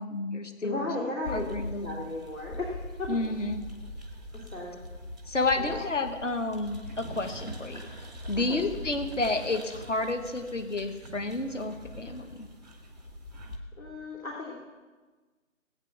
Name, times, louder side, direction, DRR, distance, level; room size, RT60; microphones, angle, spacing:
voice 1, 0.0-0.9 1.3-1.9 3.1-3.6 5.3-7.9 8.3-12.5, left 2 dB, 65° left, 7 dB, 1.5 m, -30 dB
voice 2, 0.6-3.4 4.5-4.8 5.6-5.8 8.3-8.6 13.8-14.7, left 2 dB, 80° left, -2 dB, 3.1 m, -36 dB
sound 1, 1.2-13.6, equal, ahead, 0.6 m, -42 dB
18.5 x 8.5 x 5.9 m, 1.3 s
figure-of-eight pair, 165°, 40 cm